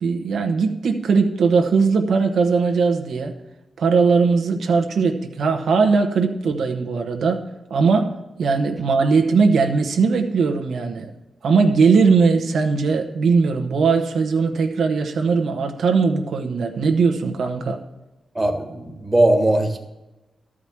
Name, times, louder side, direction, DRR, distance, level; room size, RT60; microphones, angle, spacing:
voice 1, 0.0-3.3 3.8-7.4 7.7-8.1 8.4-11.1 11.4-17.8, right 4 dB, 90° right, 4 dB, 1.0 m, -19 dB
voice 2, 18.3-19.8, right 1 dB, 15° right, 4 dB, 1.5 m, -19 dB
12.5 x 5.0 x 7.3 m, 1.0 s
wide cardioid pair, 115°, 0 cm